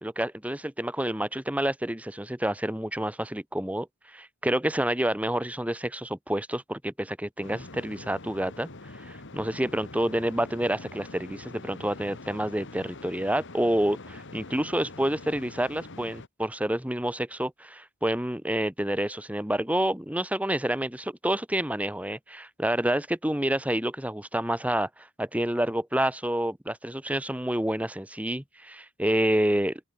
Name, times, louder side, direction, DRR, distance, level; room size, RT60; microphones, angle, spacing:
voice 1, 0.0-8.7 9.0-29.8, right 1 dB, 5° right, 1.7 m, -28 dB
sound 1, 7.4-16.3, left 2 dB, 55° left, 2.4 m, -44 dB
open air
head